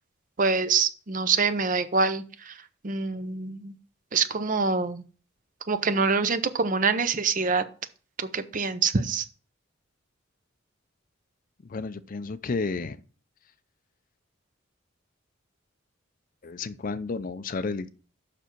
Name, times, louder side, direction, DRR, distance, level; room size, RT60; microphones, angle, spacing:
voice 1, 0.4-3.7 4.1-5.0 5.7-7.6 8.2-9.3, right 4 dB, 40° right, 0.6 m, -25 dB
voice 2, 11.6-13.0 16.4-17.9, left 4 dB, 40° left, 0.5 m, -32 dB
6.9 x 6.1 x 4.5 m
head